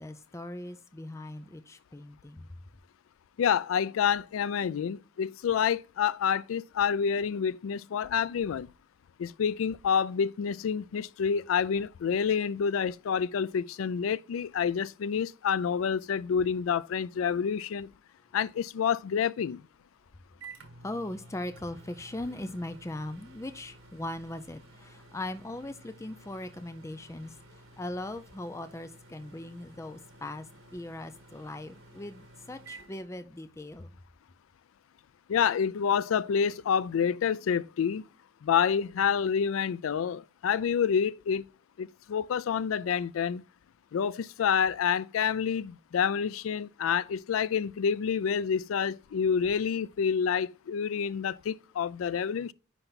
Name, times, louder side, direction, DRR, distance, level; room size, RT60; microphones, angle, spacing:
voice 1, 0.0-2.5 20.8-33.9, left 1 dB, 15° left, 0.4 m, -39 dB
voice 2, 3.4-8.7 9.2-17.9 18.3-19.6 35.3-38.0 38.4-41.4 41.8-43.4 43.9-52.5, left 7 dB, 90° left, 0.4 m, -28 dB
Microwave oven, 19.7-33.7, right 3 dB, 90° right, 1.3 m, -53 dB
10.0 x 3.3 x 4.0 m
head